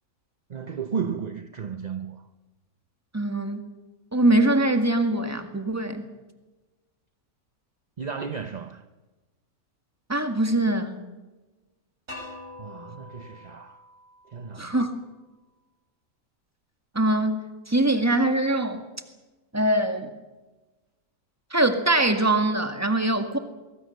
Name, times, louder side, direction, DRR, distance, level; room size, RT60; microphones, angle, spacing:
voice 1, 0.5-2.3 8.0-8.9 12.6-13.8 14.3-14.8, right 6 dB, 35° right, 0.7 m, -34 dB
voice 2, 3.1-3.6 4.1-6.0 10.1-11.0 14.6-14.9 16.9-18.8 19.5-20.1 21.5-23.4, right 1 dB, 10° right, 1.8 m, -23 dB
sound 1, 12.1-15.0, left 2 dB, 70° right, 7.5 m, -44 dB
23.5 x 22.0 x 6.7 m
omnidirectional pair, 1.6 m